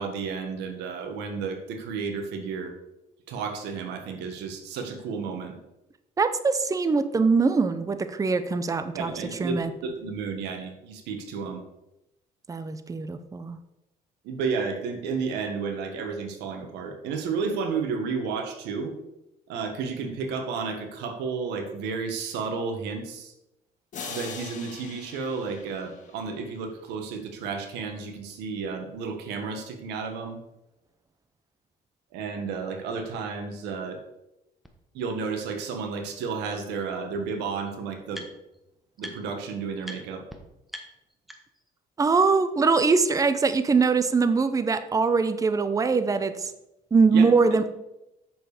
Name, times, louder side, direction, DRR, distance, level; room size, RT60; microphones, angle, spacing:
voice 1, 0.0-2.7 3.3-5.6 8.9-9.6 9.8-11.6 14.2-18.9 19.5-23.3 24.1-30.4 32.1-34.0 34.9-38.2 39.0-40.2 47.1-47.3, right 5 dB, 90° right, 6 dB, 1.5 m, -32 dB
voice 2, 6.2-9.1 9.4-9.7 12.5-13.6 42.0-46.5 46.9-47.7, right 4 dB, 20° right, 11 dB, 0.7 m, -22 dB
sound 1, 23.9-26.6, left 5 dB, 50° left, 2.0 m, -41 dB
sound 2, 34.6-34.7 35.4-35.5 36.8-36.9 37.1-38.6 39.0-39.4 39.8-40.0 40.3-40.4 40.7-41.7, equal, ahead, 1.2 m, -43 dB
7.8 x 6.8 x 5.0 m, 0.90 s
cardioid pair, 110°, 17 cm